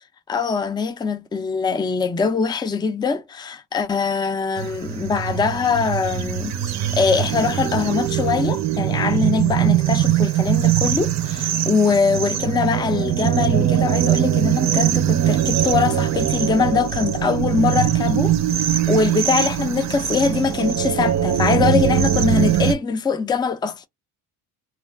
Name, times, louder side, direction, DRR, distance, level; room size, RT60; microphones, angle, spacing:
voice 1, 0.3-18.3 18.9-23.9, left 5 dB, 10° left, 0.4 m, -22 dB
sound 1, 4.6-22.7, right 10 dB, 45° right, 0.5 m, -21 dB
2.3 x 2.3 x 3.3 m
cardioid pair, 120°, 40 cm